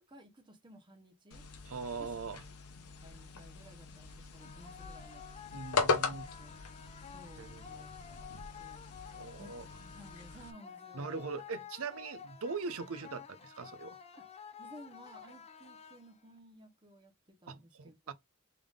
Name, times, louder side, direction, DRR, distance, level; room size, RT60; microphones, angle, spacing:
voice 1, 0.1-1.4 2.0-2.1 3.0-5.2 5.9-6.6 7.1-8.3 8.6-8.8 9.4-11.3 14.2-14.3 14.6-18.1, equal, 20° right, 1.0 m, -56 dB
sound 1, 1.3-10.5, left 4 dB, 85° left, 0.9 m, -39 dB
voice 2, 1.7-2.4 5.5-6.3 6.5-6.7 7.0-7.1 7.4-7.9 9.1-9.6 10.9-14.0 17.5-18.1, right 4 dB, 65° right, 0.6 m, -41 dB
sound 2, 4.4-16.4, left 8 dB, 30° left, 0.5 m, -51 dB
3.5 x 3.5 x 3.6 m
head